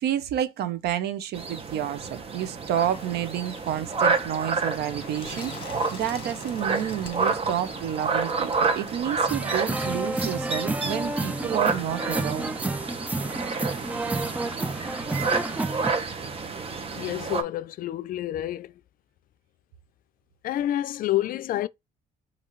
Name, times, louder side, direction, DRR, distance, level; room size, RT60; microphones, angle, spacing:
voice 1, 0.0-12.5, right 10 dB, 75° right, 0.8 m, -30 dB
sound 1, 1.3-17.4, right 4 dB, 35° right, 1.1 m, -30 dB
Bird, 2.7-10.3, left 4 dB, 30° left, 1.7 m, -46 dB
sound 2, 9.3-15.9, right 2 dB, 10° right, 0.4 m, -30 dB
voice 2, 16.9-18.7 20.4-21.7, left 13 dB, 55° left, 0.4 m, -28 dB
5.8 x 2.7 x 3.1 m
cardioid pair, 110°, 17 cm